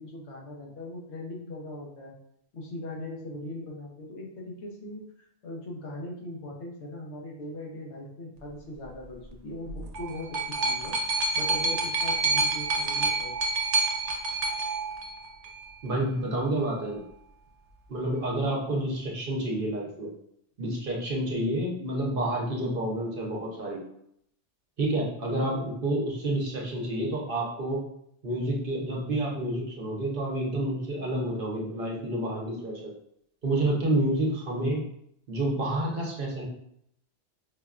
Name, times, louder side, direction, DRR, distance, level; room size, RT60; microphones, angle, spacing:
voice 1, 0.0-2.1 2.5-11.0 11.3-13.4, left 1 dB, 75° left, -2 dB, 1.1 m, -40 dB
sound 1, 9.7-15.7 16.6-16.7, right 3 dB, 85° right, 0.9 m, -28 dB
voice 2, 15.8-17.0 17.9-20.1 20.6-23.8 24.8-27.8 28.2-32.9 33.4-34.8 35.3-36.4, right 1 dB, 55° right, -2 dB, 0.9 m, -29 dB
5.0 x 2.2 x 2.4 m, 0.73 s
omnidirectional pair, 1.2 m